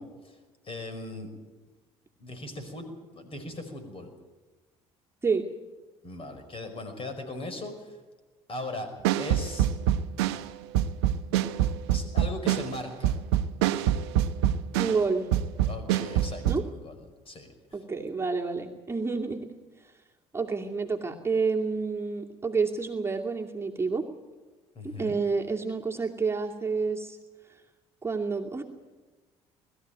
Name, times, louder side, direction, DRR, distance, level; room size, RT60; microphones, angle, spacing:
voice 1, 0.6-1.3 2.2-4.1 6.0-8.0 8.5-8.9 9.2-9.7 11.9-13.2 15.7-17.0 17.3-17.8 24.8-25.2, left 2 dB, 40° left, 7 dB, 5.4 m, -39 dB
sound 1, 9.0-15.1 15.3-16.7, right 11 dB, 80° right, 0.8 m, -25 dB
voice 2, 14.8-15.3 16.5-16.6 17.7-19.5 20.3-24.0 24.8-27.2 28.0-28.6, right 4 dB, 20° right, 0 dB, 2.5 m, -29 dB
21.0 x 14.0 x 9.3 m, 1.2 s
hypercardioid pair, 65°, 14 cm